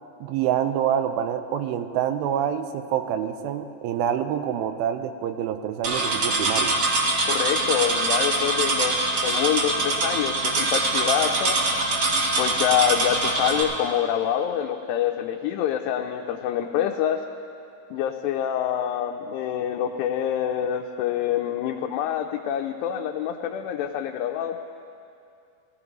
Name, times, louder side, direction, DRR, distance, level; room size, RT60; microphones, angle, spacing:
voice 1, 0.2-6.8, right 9 dB, 90° right, 9 dB, 2.5 m, -26 dB
toaster on fridge, 5.8-13.6, right 2 dB, 55° right, 2.1 m, -24 dB
voice 2, 7.3-11.6 12.4-17.2 17.9-24.6, left 10 dB, 80° left, 3 dB, 2.2 m, -26 dB
19.0 x 15.5 x 3.1 m, 2.5 s
omnidirectional pair, 4.2 m